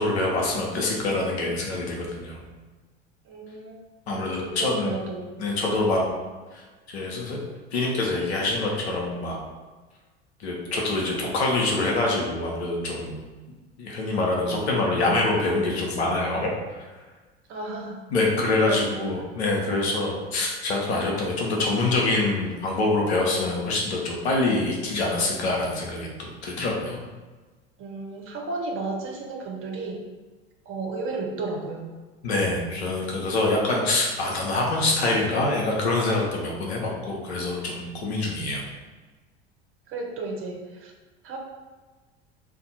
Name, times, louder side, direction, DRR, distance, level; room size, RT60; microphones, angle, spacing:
voice 1, 0.0-2.4 4.1-5.0 5.4-6.0 6.5-6.6 6.9-7.4 7.7-9.4 10.4-13.2 13.8-16.5 18.1-27.0 32.2-38.6, left 2 dB, 80° left, -1 dB, 0.9 m, -25 dB
voice 2, 3.2-5.3 17.5-18.0 18.7-19.2 27.8-30.0 30.7-31.9 39.9-40.9 41.2-41.4, right 3 dB, 40° right, 1 dB, 0.8 m, -33 dB
2.6 x 2.5 x 4.1 m, 1.3 s
hypercardioid pair, 75°, 32 cm